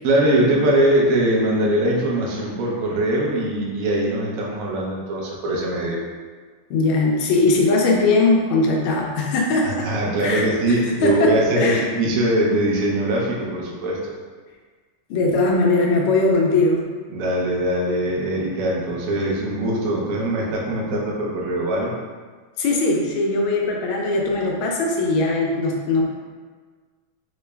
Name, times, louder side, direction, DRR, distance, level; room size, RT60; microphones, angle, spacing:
voice 1, 0.0-6.0 9.8-14.1 17.1-21.9, right 1 dB, 80° right, -3 dB, 0.7 m, -21 dB
voice 2, 6.7-9.9 10.2-11.9 15.1-16.8 22.6-26.0, left 2 dB, 85° left, -1 dB, 1.4 m, -20 dB
3.8 x 2.1 x 3.2 m, 1.5 s
omnidirectional pair, 2.2 m